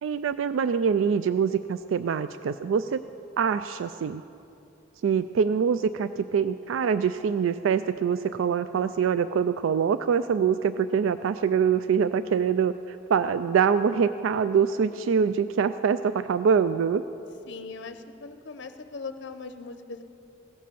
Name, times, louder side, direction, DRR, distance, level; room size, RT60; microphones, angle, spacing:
voice 1, 0.0-3.0 3.4-4.2 5.0-12.7 13.1-17.0, right 6 dB, 80° right, 13 dB, 0.3 m, -24 dB
voice 2, 17.5-20.0, left 4 dB, 60° left, 9 dB, 0.6 m, -39 dB
16.5 x 7.6 x 7.0 m, 2.7 s
head